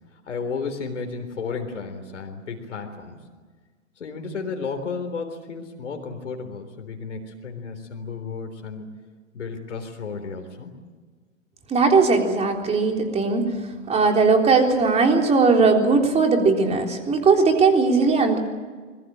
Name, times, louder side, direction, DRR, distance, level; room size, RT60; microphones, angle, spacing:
voice 1, 0.3-3.2 4.0-8.9 9.3-10.8, left 5 dB, 70° left, 5 dB, 3.8 m, -33 dB
voice 2, 11.7-13.4 13.9-18.4, right 4 dB, 15° right, 3 dB, 3.7 m, -18 dB
25.0 x 21.5 x 8.8 m, 1.4 s
figure-of-eight pair, 110°, 38 cm